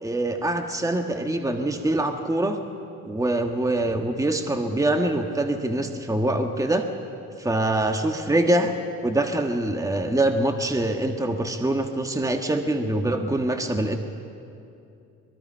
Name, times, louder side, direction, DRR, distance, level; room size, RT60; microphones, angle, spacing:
voice 1, 0.0-2.6 3.0-6.9 7.4-8.7 9.0-14.0, right 1 dB, 10° right, 4 dB, 1.6 m, -24 dB
24.0 x 22.0 x 5.6 m, 2.6 s
cardioid pair, 90°, 30 cm